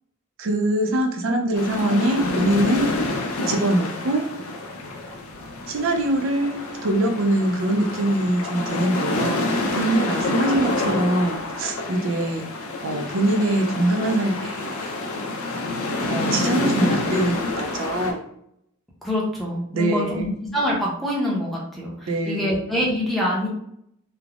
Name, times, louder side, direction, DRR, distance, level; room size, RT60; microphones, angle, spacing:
voice 1, 0.4-3.0 3.5-4.3 5.7-12.5 12.8-14.7 15.0-15.1 16.1-18.2 19.7-20.3 22.1-22.6, right 1 dB, 65° right, 2 dB, 0.4 m, -23 dB
sound 1, 1.5-18.1, left 2 dB, 80° left, 0.6 m, -27 dB
voice 2, 19.0-23.5, left 1 dB, ahead, -5 dB, 0.6 m, -25 dB
3.3 x 2.0 x 2.4 m, 0.73 s
head